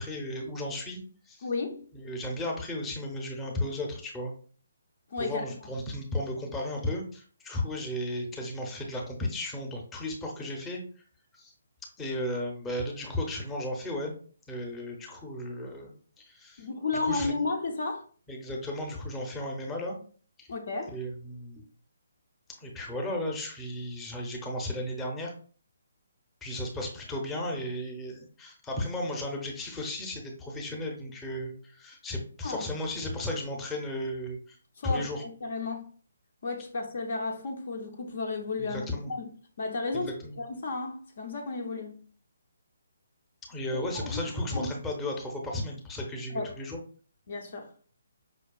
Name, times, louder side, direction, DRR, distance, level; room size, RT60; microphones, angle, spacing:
voice 1, 0.0-1.4 1.9-4.3 5.2-10.8 11.4-11.5 12.0-14.1 14.5-16.7 17.0-17.3 18.3-20.0 20.4-20.5 20.8-21.6 22.6-25.3 26.4-34.6 34.8-35.2 38.6-39.1 39.9-40.4 43.5-46.8, left 1 dB, 10° left, 0.7 m, -34 dB
voice 2, 1.4-1.8 5.1-5.4 16.6-18.0 20.5-21.0 32.4-32.7 34.8-35.9 36.4-39.3 39.6-42.0 43.7-44.2 44.5-44.7 46.3-46.5 47.3-47.7, left 3 dB, 55° left, 0.6 m, -33 dB
5.2 x 2.3 x 2.3 m
figure-of-eight pair, 140°, 0 cm